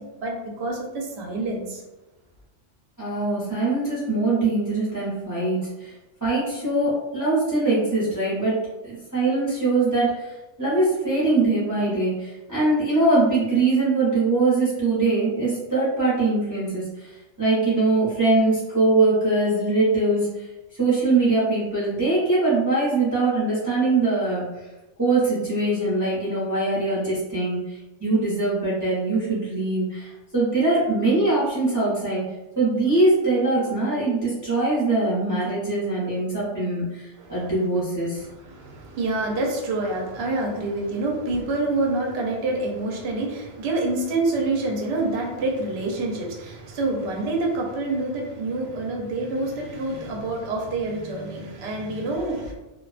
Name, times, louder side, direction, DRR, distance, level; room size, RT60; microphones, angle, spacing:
voice 1, 0.2-1.8 37.2-37.5 38.2-52.5, right 2 dB, 65° right, 0 dB, 0.8 m, -27 dB
voice 2, 3.0-5.9 6.2-8.6 8.8-10.3 10.6-17.1 17.4-20.3 20.8-24.5 25.0-32.2 32.6-38.2, right 2 dB, 20° right, -9 dB, 0.6 m, -22 dB
2.3 x 2.2 x 2.4 m, 1.0 s
omnidirectional pair, 1.3 m